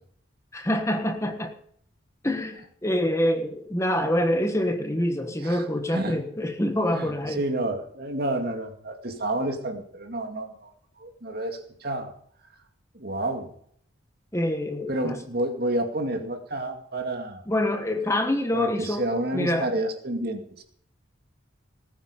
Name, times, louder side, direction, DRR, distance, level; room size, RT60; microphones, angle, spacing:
voice 1, 0.5-1.5 2.2-7.4 14.3-15.2 17.5-19.1 19.3-19.7, left 1 dB, 15° left, 6 dB, 1.3 m, -26 dB
voice 2, 5.9-6.2 6.9-10.7 11.0-12.1 12.9-13.5 14.9-17.4 18.5-20.6, right 1 dB, 50° right, 5 dB, 2.3 m, -30 dB
19.5 x 9.5 x 5.3 m, 0.65 s
head